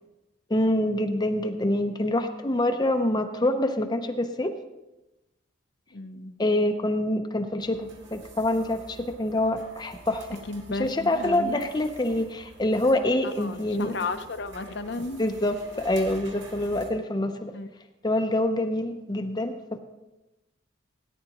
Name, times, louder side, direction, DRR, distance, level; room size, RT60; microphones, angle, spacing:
voice 1, 0.5-4.6 6.4-10.4 10.7-14.0 15.2-17.5 18.0-19.8, left 1 dB, 20° left, 6 dB, 0.6 m, -26 dB
voice 2, 5.9-6.3 10.5-11.6 13.2-15.3 17.5-17.7, left 3 dB, 55° left, 10 dB, 0.7 m, -34 dB
sound 1, 7.6-16.9, right 1 dB, 60° right, 2.3 m, -48 dB
17.5 x 10.0 x 3.0 m, 1.0 s
head